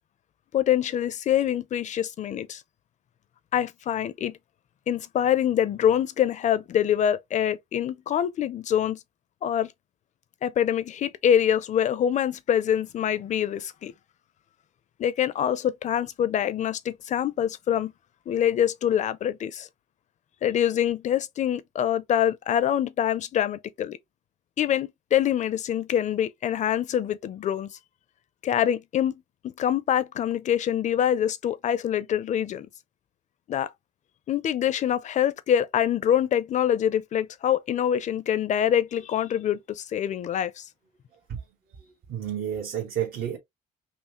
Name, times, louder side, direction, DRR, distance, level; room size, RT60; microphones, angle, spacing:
voice 1, 0.5-2.6 3.5-4.4 4.9-9.0 9.4-9.7 10.4-13.9 15.0-17.9 18.3-19.7 20.4-24.0 24.6-27.7 28.4-32.7 33.5-33.7 34.3-40.7, left 10 dB, 45° left, 0.5 m, -25 dB
voice 2, 41.1-43.4, right 10 dB, 65° right, 1.2 m, -32 dB
5.6 x 2.0 x 2.9 m
cardioid pair, 110°, 17 cm